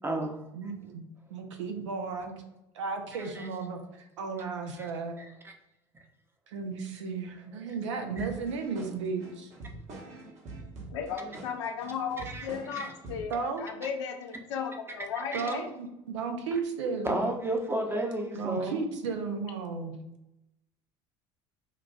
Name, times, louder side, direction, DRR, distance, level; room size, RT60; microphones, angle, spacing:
voice 1, 0.0-0.4 3.2-3.5 8.2-8.3 12.3-12.4 12.8-12.9 15.3-15.5 17.0-18.8, right 1 dB, 15° right, 2 dB, 0.8 m, -31 dB
voice 2, 0.5-2.4 2.7-3.8 4.2-5.2 6.5-9.5 13.3-13.7 15.3-17.2 18.3-20.0, right 4 dB, 80° right, 4 dB, 0.6 m, -34 dB
sound 1, 8.2-13.3, right 2 dB, 50° right, 1.1 m, -45 dB
voice 3, 10.9-15.7, left 6 dB, 75° left, 4 dB, 0.6 m, -35 dB
5.5 x 2.4 x 2.3 m, 0.88 s
hypercardioid pair, 65°, 15 cm